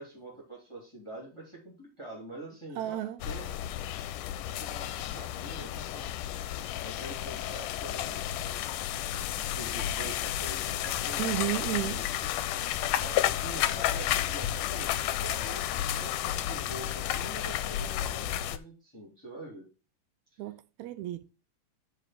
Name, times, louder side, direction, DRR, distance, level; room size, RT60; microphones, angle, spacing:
voice 1, 0.0-3.6 4.6-6.1 6.6-8.4 9.1-12.0 12.8-19.7 20.3-20.4, right 2 dB, 10° left, 3.0 m, -45 dB
voice 2, 2.8-3.2 11.2-12.0 20.4-21.3, right 15 dB, 80° right, 1.7 m, -33 dB
sound 1, 3.2-18.6, left 12 dB, 80° left, 2.1 m, -32 dB
6.5 x 5.3 x 6.0 m
omnidirectional pair, 3.7 m